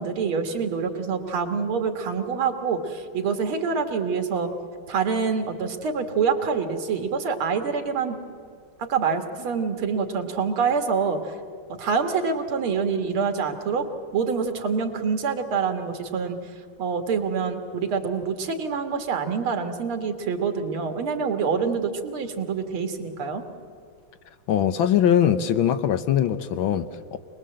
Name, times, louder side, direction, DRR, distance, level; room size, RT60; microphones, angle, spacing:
voice 1, 0.0-4.5 4.9-8.2 8.8-11.4 11.8-13.9 14.1-16.4 16.8-23.5, right 5 dB, 75° right, 6 dB, 2.5 m, -26 dB
voice 2, 24.5-27.2, left 9 dB, 70° left, 11 dB, 1.5 m, -21 dB
25.0 x 20.5 x 7.7 m, 2.2 s
omnidirectional pair, 2.4 m